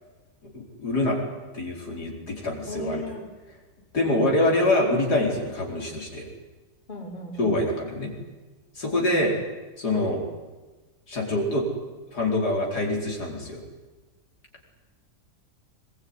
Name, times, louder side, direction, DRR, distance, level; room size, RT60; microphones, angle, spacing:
voice 1, 0.4-1.2 1.5-3.0 3.9-6.3 7.4-8.1 8.8-9.4 9.8-10.2 11.1-11.7 12.1-13.6, left 1 dB, 70° left, -1 dB, 5.3 m, -25 dB
voice 2, 2.7-3.2 6.9-7.6 8.9-9.3, left 2 dB, 30° left, -1 dB, 5.0 m, -37 dB
24.0 x 22.0 x 9.9 m, 1.2 s
omnidirectional pair, 1.8 m